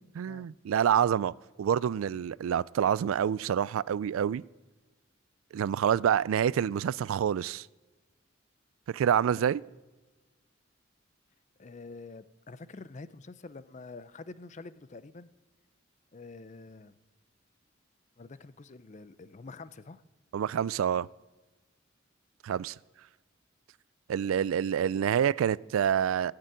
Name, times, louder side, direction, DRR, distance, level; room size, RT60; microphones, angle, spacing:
voice 1, 0.0-4.4 5.5-7.7 8.9-9.6 20.3-21.1 22.4-22.7 24.1-26.3, right 8 dB, 85° right, 0.3 m, -27 dB
voice 2, 11.6-15.3 16.1-16.9 18.2-20.0, left 3 dB, 35° left, 0.5 m, -47 dB
14.0 x 6.7 x 9.1 m
head